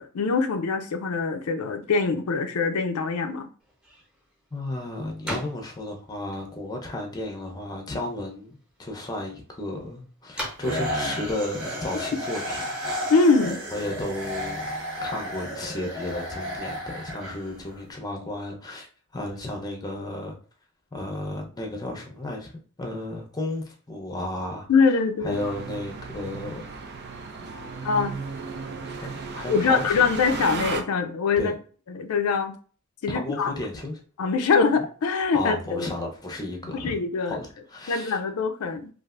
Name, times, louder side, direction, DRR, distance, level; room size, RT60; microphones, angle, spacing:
voice 1, 0.0-3.5 13.1-13.6 24.7-25.4 27.8-28.1 29.5-31.5 31.9-32.6 33.0-33.5 34.2-35.9 36.7-37.4 37.9-38.9, left 4 dB, 85° left, 0.4 m, -23 dB
sound 1, 3.6-12.8, equal, 5° right, 0.9 m, -43 dB
voice 2, 4.5-12.6 13.7-14.7 15.0-18.9 19.1-20.4 20.9-22.5 22.8-24.7 25.2-26.7 27.4-27.9 29.0-30.0 31.4-31.6 33.1-34.0 34.8-34.9 35.3-36.9 37.3-38.2, left 1 dB, 20° left, 0.6 m, -33 dB
sound 2, 10.6-17.8, equal, 75° right, 1.1 m, -32 dB
sound 3, 25.3-30.8, right 4 dB, 50° right, 0.4 m, -35 dB
3.2 x 2.4 x 2.4 m
head